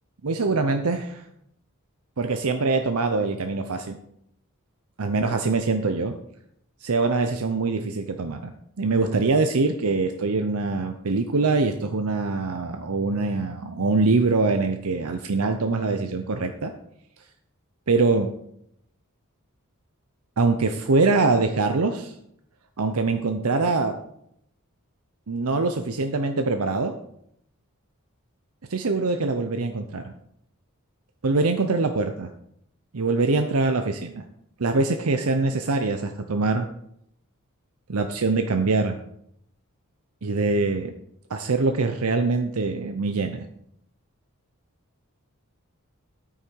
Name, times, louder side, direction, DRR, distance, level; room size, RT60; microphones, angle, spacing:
voice 1, 0.2-1.2 2.2-4.0 5.0-6.1 6.8-8.5 8.8-16.7 17.9-18.3 20.4-22.1 22.8-23.9 25.3-26.9 28.7-30.1 31.2-32.3 32.9-34.2 34.6-36.6 37.9-39.0 40.2-40.9 41.3-43.5, right 3 dB, 75° right, 7 dB, 0.7 m, -23 dB
10.0 x 8.8 x 4.6 m, 0.75 s
head